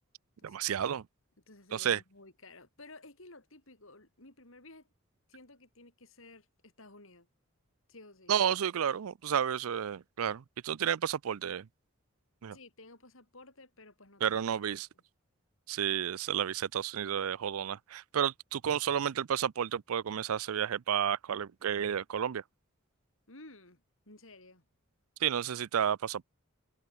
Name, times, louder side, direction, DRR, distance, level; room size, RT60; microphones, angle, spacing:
voice 1, 0.4-1.1 1.7-2.0 8.3-11.7 12.4-12.6 14.2-14.9 15.7-22.4 25.2-26.2, right 8 dB, 85° right, 0.4 m, -31 dB
voice 2, 1.5-4.9 5.3-7.3 7.9-8.4 12.5-14.4 14.7-14.8 23.3-24.7, left 2 dB, 70° left, 5.2 m, -54 dB
open air
head